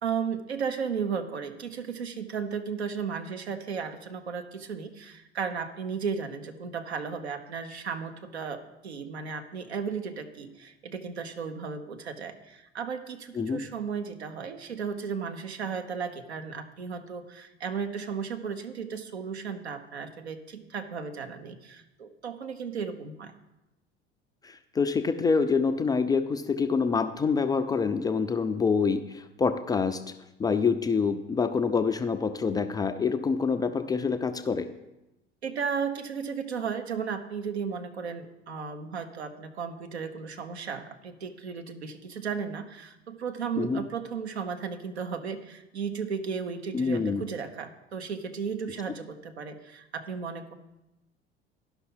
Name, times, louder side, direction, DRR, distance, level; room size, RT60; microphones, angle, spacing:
voice 1, 0.0-23.3 35.4-50.5, right 6 dB, 75° right, 7 dB, 0.9 m, -35 dB
voice 2, 24.4-30.0 30.4-34.7 43.6-43.8 46.7-47.2, left 5 dB, 10° left, 9 dB, 0.3 m, -26 dB
11.5 x 5.8 x 5.7 m, 0.96 s
figure-of-eight pair, 70°, 33 cm